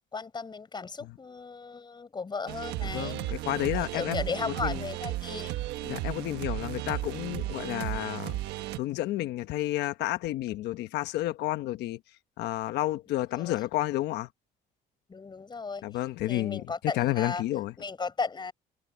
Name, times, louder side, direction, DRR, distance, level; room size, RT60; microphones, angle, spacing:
voice 1, 0.1-3.1 3.7-5.6 13.4-13.5 15.1-16.0 16.3-17.4 17.8-18.5, left 4 dB, 25° left, 6.4 m, -35 dB
sound 1, 2.5-8.8, right 16 dB, 90° right, 1.3 m, -34 dB
voice 2, 2.8-4.8 5.8-8.4 8.7-12.0 12.4-14.3 15.8-16.6 16.9-17.7, left 15 dB, 80° left, 1.2 m, -31 dB
cardioid pair, 110°, 17 cm